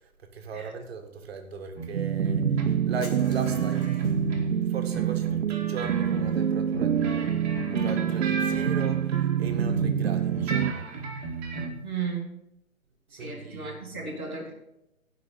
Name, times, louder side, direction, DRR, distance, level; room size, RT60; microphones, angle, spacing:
voice 1, 0.0-4.2 4.7-10.9 13.2-14.1, right 4 dB, 45° right, 5 dB, 1.8 m, -38 dB
sound 1, 1.8-4.6 4.9-10.0 10.3-11.7, right 4 dB, 30° right, 2.1 m, -34 dB
sound 2, 1.9-10.7, right 8 dB, 70° right, 0.6 m, -26 dB
Shatter, 3.0-4.4, left 3 dB, 80° left, 1.8 m, -47 dB
voice 2, 11.8-12.4 13.1-14.5, right 5 dB, 10° left, -7 dB, 0.4 m, -35 dB
16.5 x 5.6 x 5.2 m, 0.88 s
figure-of-eight pair, 140°, 42 cm